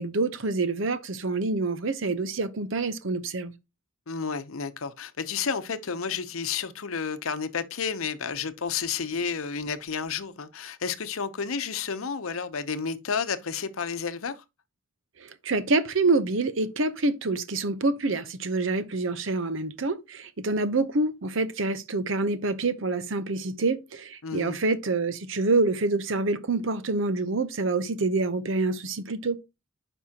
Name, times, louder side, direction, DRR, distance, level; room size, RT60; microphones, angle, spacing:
voice 1, 0.0-3.5 15.2-29.4, right 3 dB, 65° right, 0.7 m, -27 dB
voice 2, 4.1-14.4 24.2-24.6, left 6 dB, 80° left, 0.8 m, -31 dB
9.6 x 5.4 x 2.8 m
head